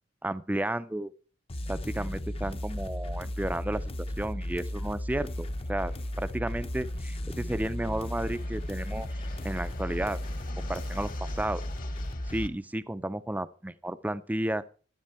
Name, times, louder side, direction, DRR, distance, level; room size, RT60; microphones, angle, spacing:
voice 1, 0.2-1.1 1.7-9.1 9.4-10.2 10.6-11.6 12.3-14.6, right 1 dB, 10° right, 0.5 m, -33 dB
sound 1, 1.5-12.5, left 1 dB, 30° left, 0.7 m, -35 dB
Fixed-wing aircraft airplane, 5.1-12.5, left 2 dB, 50° left, 1.5 m, -48 dB
13.0 x 10.5 x 4.3 m
head